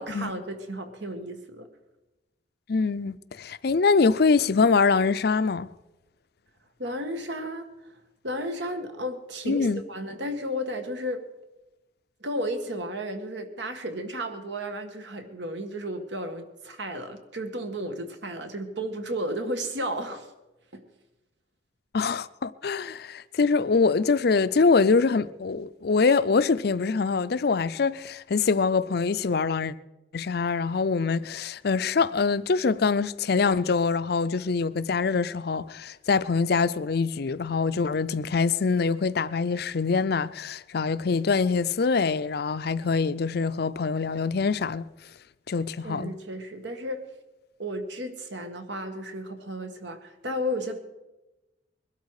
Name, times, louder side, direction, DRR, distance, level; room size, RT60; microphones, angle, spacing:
voice 1, 0.0-1.7 6.8-7.7 8.2-11.2 12.2-20.3 20.7-20.8 45.8-47.1 47.6-50.8, equal, 75° right, 1.8 m, -33 dB
voice 2, 2.7-5.7 9.5-9.8 21.9-29.7 30.1-44.9 45.5-46.1, left 4 dB, 60° left, 0.5 m, -24 dB
21.5 x 12.5 x 4.9 m
head